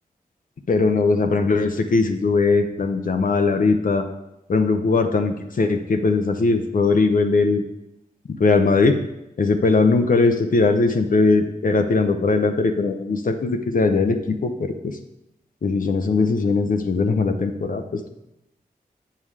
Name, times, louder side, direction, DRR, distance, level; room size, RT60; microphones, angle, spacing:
voice 1, 0.7-4.1 4.5-7.6 8.4-9.0 9.4-15.0 15.6-18.1, left 3 dB, 60° left, 5 dB, 0.7 m, -20 dB
8.5 x 5.7 x 4.8 m, 0.88 s
wide cardioid pair, 85°, 16 cm